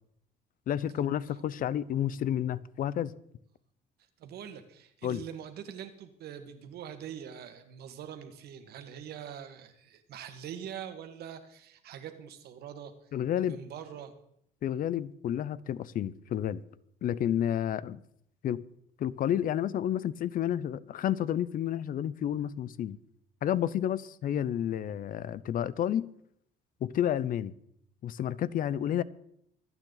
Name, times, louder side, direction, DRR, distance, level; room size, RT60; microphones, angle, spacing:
voice 1, 0.7-3.1 5.0-5.2 13.1-13.6 14.6-16.6 17.0-18.0 18.4-18.6 19.0-23.0 23.4-26.1 26.8-27.5 28.0-29.0, left 10 dB, 55° left, 0.7 m, -30 dB
voice 2, 4.2-14.1, right 9 dB, 70° right, 1.8 m, -44 dB
25.5 x 9.1 x 4.0 m
cardioid pair, 110°, 17 cm